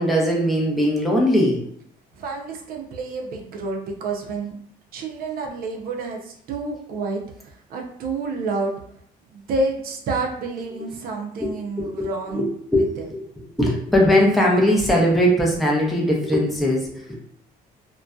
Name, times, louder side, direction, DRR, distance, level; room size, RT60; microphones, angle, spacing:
voice 1, 0.0-1.6 11.4-11.5 11.8-11.9 12.3-12.5 12.7-12.9 13.6-17.1, equal, ahead, -3 dB, 0.5 m, -19 dB
voice 2, 2.1-4.5 4.9-8.7 9.3-12.5 12.7-13.1, right 3 dB, 60° right, 1 dB, 0.5 m, -29 dB
2.5 x 2.2 x 2.2 m, 0.67 s
cardioid pair, 110°, 17 cm